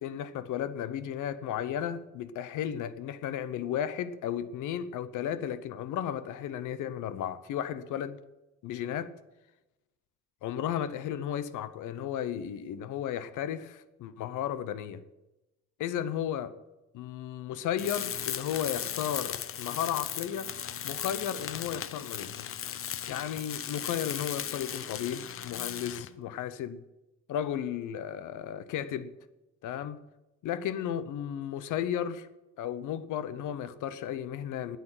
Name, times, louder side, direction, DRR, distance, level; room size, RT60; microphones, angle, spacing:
voice 1, 0.0-8.2 8.6-9.1 10.4-15.0 15.8-16.5 16.9-20.5 20.8-22.5 23.1-26.8 27.3-29.1 29.6-30.0 30.4-32.3 32.6-34.8, left 9 dB, 90° left, 0.9 m, -34 dB
Tools, 17.8-26.2, left 9 dB, 45° left, 0.7 m, -37 dB
9.8 x 8.5 x 9.0 m
cardioid pair, 90°, 30 cm